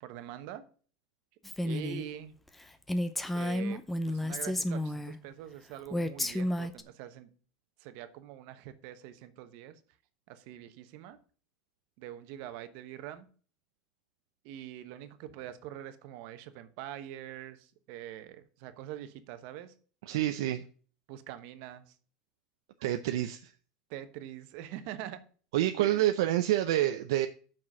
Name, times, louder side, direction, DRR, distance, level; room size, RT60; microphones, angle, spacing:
voice 1, 0.0-0.6 1.6-2.3 3.3-3.8 4.1-7.3 7.8-9.8 10.3-11.2 12.0-13.3 14.4-19.7 21.1-22.0 23.9-25.2 25.8-26.1, right 11 dB, 55° right, 1.1 m, -44 dB
Female speech woman speaking, 1.4-2.1 2.5-2.6 2.9-5.2 5.9-6.8, left 1 dB, 5° left, 0.6 m, -32 dB
voice 2, 20.1-20.6 22.8-23.5 25.5-27.3, right 13 dB, 85° right, 0.6 m, -27 dB
7.4 x 6.1 x 6.2 m
supercardioid pair, 155°, 2 cm